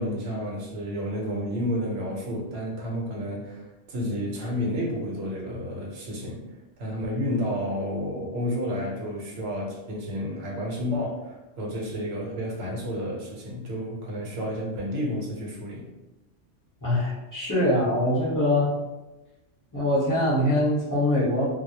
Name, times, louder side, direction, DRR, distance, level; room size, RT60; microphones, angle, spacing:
voice 1, 0.0-6.4 6.8-15.9, equal, 65° right, -2 dB, 0.9 m, -31 dB
voice 2, 16.8-18.8 19.7-21.5, left 1 dB, 20° left, -9 dB, 0.8 m, -23 dB
2.2 x 2.0 x 2.8 m, 1.0 s
omnidirectional pair, 1.2 m